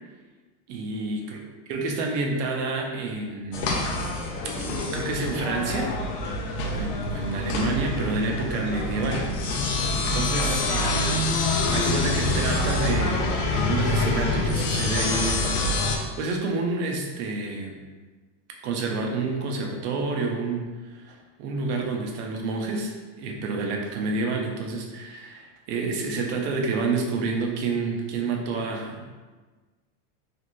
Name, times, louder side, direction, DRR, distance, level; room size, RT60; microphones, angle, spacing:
voice 1, 0.7-1.4 1.7-3.9 4.5-6.2 6.7-9.2 9.9-11.1 11.7-15.5 15.8-17.8 18.6-20.6 20.9-29.1, right 3 dB, 45° right, 1 dB, 0.5 m, -29 dB
sound 1, 3.5-16.0, left 2 dB, 75° left, 0.6 m, -26 dB
3.0 x 2.5 x 2.5 m, 1.3 s
supercardioid pair, 165°, 48 cm